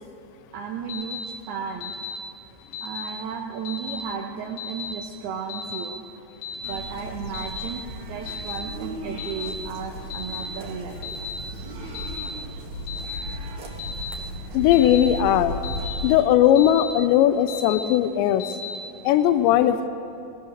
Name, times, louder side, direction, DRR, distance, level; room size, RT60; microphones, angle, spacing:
voice 1, 0.5-2.0 2.8-6.0 6.7-7.8 8.1-11.2, right 6 dB, 70° right, 0 dB, 2.9 m, -34 dB
Alarm, 0.9-1.3 1.8-2.2 2.7-3.1 3.7-4.0 4.6-4.9 5.5-5.9 6.4-6.8 7.3-7.7 8.3-8.6 9.2-9.5 10.1-10.5 11.0-11.4 12.0-12.3 12.9-13.2 13.8-14.2 14.7-15.1 15.6-16.0 16.6-16.9 17.5-17.8 18.4-18.8, left 6 dB, 60° left, 4.8 m, -34 dB
sound 1, 6.6-16.1, equal, 50° right, 2.8 m, -35 dB
voice 2, 14.5-15.5 16.0-18.4 19.0-19.9, left 11 dB, 90° left, 11 dB, 3.0 m, -18 dB
20.0 x 20.0 x 6.6 m, 2.8 s
omnidirectional pair, 5.0 m